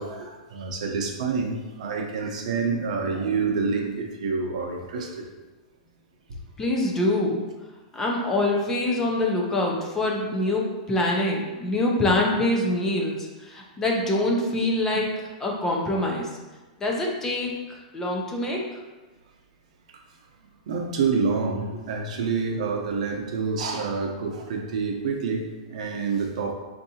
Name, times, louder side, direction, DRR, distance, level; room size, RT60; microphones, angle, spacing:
voice 1, 0.0-5.2 14.9-15.0 20.7-26.5, right 4 dB, 65° right, 1 dB, 0.6 m, -27 dB
voice 2, 6.6-7.4 7.9-15.1 15.4-16.3 16.8-18.6, left 1 dB, 10° left, -1 dB, 0.4 m, -25 dB
4.6 x 2.6 x 2.7 m, 1.2 s
supercardioid pair, 165°, 4 cm